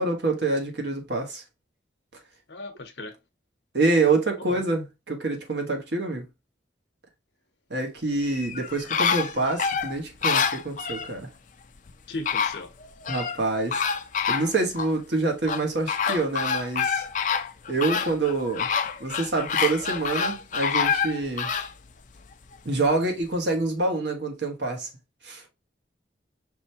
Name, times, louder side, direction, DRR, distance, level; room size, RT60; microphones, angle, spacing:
voice 1, 0.0-1.4 3.7-6.3 7.7-11.3 13.1-13.8 14.3-17.1 17.7-18.7 19.0-21.5 22.6-24.9 25.2-25.4, right 3 dB, 70° right, 1.3 m, -26 dB
voice 2, 2.5-3.1 4.4-4.6 12.1-12.7, left 2 dB, 70° left, 0.9 m, -37 dB
sound 1, 8.2-11.1 11.9-12.0 12.3-13.4 13.7-14.9 15.5-21.7 22.2-22.3, left 6 dB, 45° left, 0.5 m, -27 dB
5.2 x 3.3 x 2.8 m
head